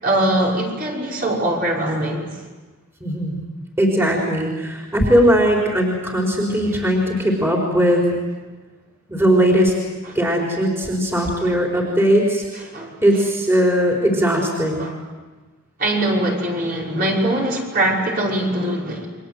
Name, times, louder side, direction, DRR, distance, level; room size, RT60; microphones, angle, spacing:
voice 1, 0.0-2.2 12.7-12.9 14.8-15.0 15.8-19.1, right 1 dB, 40° right, -2 dB, 5.6 m, -22 dB
voice 2, 3.0-3.4 3.8-8.0 9.1-9.7 10.1-12.4 13.0-14.8, equal, 10° right, -1 dB, 4.3 m, -18 dB
30.0 x 24.0 x 7.9 m, 1.3 s
head